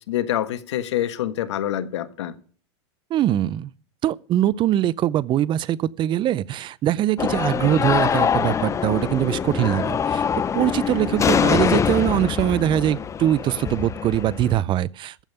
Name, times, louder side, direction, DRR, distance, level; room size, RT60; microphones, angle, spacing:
voice 1, 0.1-2.3, left 12 dB, 80° left, 1.5 m, -26 dB
voice 2, 3.1-3.7 4.0-10.2 10.5-15.1, right 12 dB, 35° right, 0.5 m, -22 dB
sound 1, 7.2-14.6, left 7 dB, 20° left, 0.7 m, -24 dB
14.5 x 5.4 x 9.1 m
hypercardioid pair, 115°, 15 cm